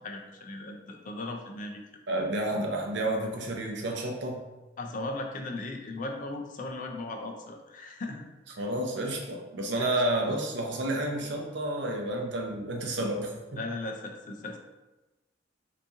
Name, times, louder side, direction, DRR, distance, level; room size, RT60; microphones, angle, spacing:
voice 1, 0.0-1.8 4.8-8.3 8.5-8.6 9.8-10.0 13.6-14.6, left 2 dB, 45° left, 3 dB, 0.4 m, -37 dB
voice 2, 2.1-4.4 8.6-13.6, right 1 dB, 70° right, 1 dB, 0.6 m, -30 dB
2.9 x 2.6 x 3.5 m, 1.1 s
head